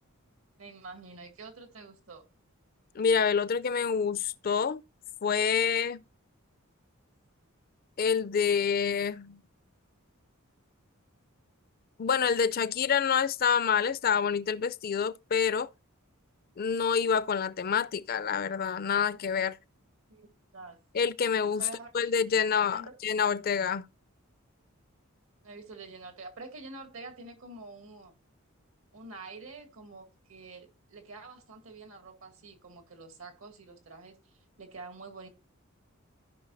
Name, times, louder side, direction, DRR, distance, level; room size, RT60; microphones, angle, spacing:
voice 1, 0.6-2.2 20.1-20.8 21.6-21.9 22.7-23.0 25.4-28.1 28.9-35.3, right 3 dB, 70° right, 2.1 m, -47 dB
voice 2, 3.0-4.8 5.2-6.0 8.0-9.4 12.0-15.7 16.6-19.6 20.9-21.7 21.9-23.8, left 6 dB, 45° left, 0.4 m, -27 dB
15.5 x 5.5 x 2.6 m
head